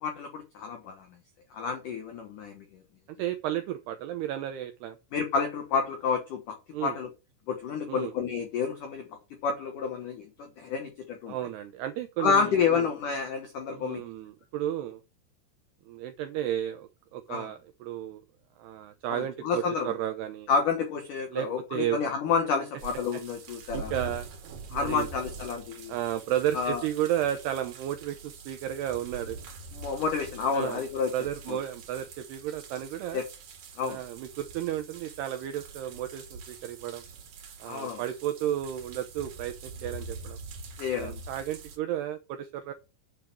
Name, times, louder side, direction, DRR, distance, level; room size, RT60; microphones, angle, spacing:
voice 1, 0.0-1.1 1.5-2.8 5.1-7.1 7.5-9.1 9.4-11.4 12.2-14.0 17.3-17.5 19.1-19.9 20.5-23.9 24.7-25.9 26.5-26.8 29.7-31.1 31.5-31.6 33.1-33.2 33.8-34.0 37.6-38.0 40.8-41.2, left 5 dB, 85° left, 5 dB, 1.8 m, -29 dB
voice 2, 3.2-5.0 6.7-7.0 7.9-8.1 11.3-12.9 13.7-15.0 15.9-18.2 18.6-20.5 21.3-22.0 23.7-24.3 24.7-25.1 25.9-29.4 30.5-30.8 31.1-33.2 33.8-37.0 37.6-40.4 41.0-42.7, right 11 dB, 85° right, 8 dB, 2.3 m, -33 dB
sound 1, 22.8-41.8, right 3 dB, 55° right, 3.0 m, -44 dB
8.8 x 6.5 x 6.0 m, 0.29 s
omnidirectional pair, 5.7 m